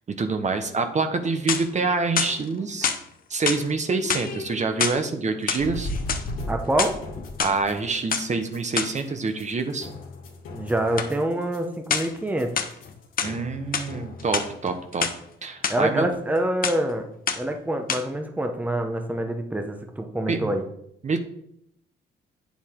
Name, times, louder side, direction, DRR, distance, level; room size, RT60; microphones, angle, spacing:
voice 1, 0.2-2.9 3.3-5.9 7.4-9.9 13.2-15.1 15.4-16.1 20.3-20.5 21.0-21.2, right 4 dB, 35° right, 7 dB, 1.1 m, -26 dB
sound 1, 1.2-1.8 2.2-3.0 3.4-3.7 4.0-5.0 5.4-6.3 6.6-7.5 8.1-8.3 8.8-9.0 11.0-11.1 11.9-12.2 12.6-13.4 13.7-13.9 14.2-15.2 15.6-15.8 16.1-16.4 16.6-16.9 17.3-17.6 17.9-18.0, left 6 dB, 45° left, 1.0 m, -27 dB
sound 2, 5.6-14.8, left 1 dB, 85° left, 2.2 m, -37 dB
voice 2, 6.5-7.0 10.5-12.6 15.7-17.1 17.3-20.6, right 1 dB, 10° right, 5 dB, 1.0 m, -26 dB
8.5 x 7.2 x 3.8 m, 0.73 s
cardioid pair, 90°, 20 cm